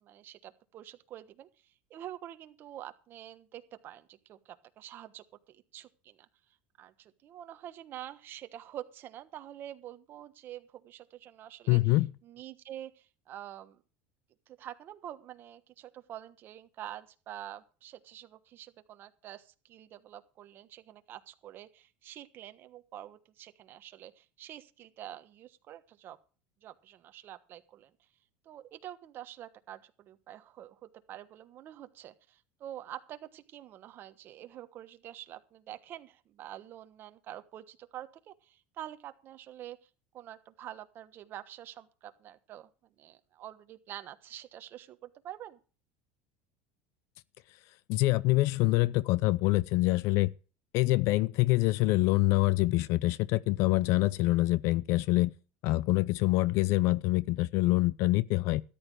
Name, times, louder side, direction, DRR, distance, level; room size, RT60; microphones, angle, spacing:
voice 1, 0.0-6.3 6.8-13.8 14.5-26.2 26.6-27.9 28.4-42.7 43.0-45.6, right 12 dB, 40° right, 1.2 m, -47 dB
voice 2, 11.7-12.1 47.9-50.3 50.7-55.3 55.6-58.6, left 20 dB, 55° left, 0.5 m, -25 dB
13.5 x 10.5 x 4.8 m
supercardioid pair, 140°, 6 cm